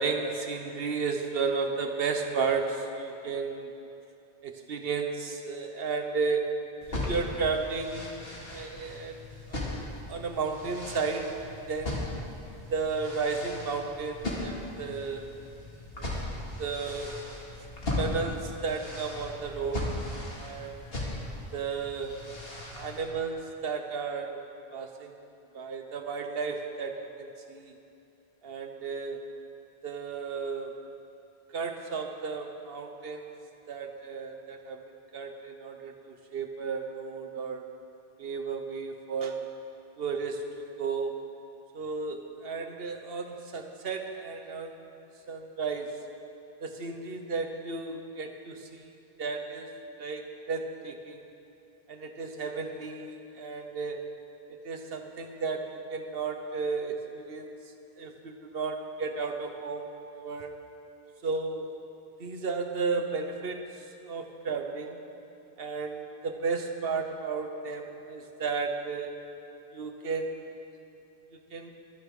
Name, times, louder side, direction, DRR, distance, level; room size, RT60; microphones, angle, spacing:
voice 1, 0.0-3.7 4.4-6.6 6.9-9.2 9.5-9.6 10.1-12.1 12.7-15.2 16.0-16.1 16.6-17.2 18.0-20.0 20.3-20.8 21.5-22.2 22.8-24.4 24.7-25.1 25.5-27.7 28.4-29.2 29.8-30.7 31.5-33.3 33.7-34.8 35.1-37.6 38.2-39.5 40.0-41.1 41.7-44.8 45.3-46.0 46.6-48.9 49.2-49.7 50.0-51.2 51.9-54.1 54.6-57.5 58.0-60.5 61.2-61.7 62.2-63.8 64.1-65.0 65.6-69.1 69.7-70.6 71.5-71.7, right 4 dB, 70° right, 5 dB, 1.2 m, -33 dB
sound 1, 6.8-23.1, left 2 dB, 70° left, 2.4 m, -38 dB
23.0 x 9.7 x 3.7 m, 2.8 s
omnidirectional pair, 1.0 m